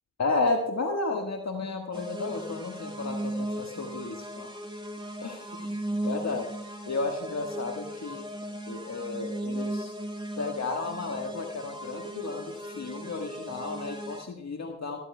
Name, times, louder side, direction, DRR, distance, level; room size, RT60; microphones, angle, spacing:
voice 1, 0.2-4.5 5.2-5.7 6.0-6.5 6.9-8.2 8.7-9.9 10.4-15.0, left 3 dB, 50° left, 3 dB, 1.5 m, -32 dB
sound 1, 1.9-14.2, right 1 dB, 10° right, 2.0 m, -37 dB
14.0 x 13.5 x 2.3 m, 0.83 s
supercardioid pair, 45°, 36 cm